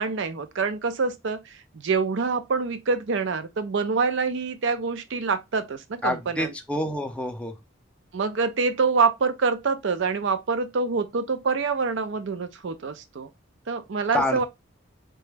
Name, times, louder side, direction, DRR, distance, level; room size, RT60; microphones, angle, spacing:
voice 1, 0.0-6.5 8.1-13.3 13.7-14.4, right 4 dB, 65° right, 0.5 m, -26 dB
voice 2, 6.0-7.5 14.1-14.4, left 1 dB, 5° left, 0.4 m, -27 dB
3.9 x 2.3 x 3.2 m
head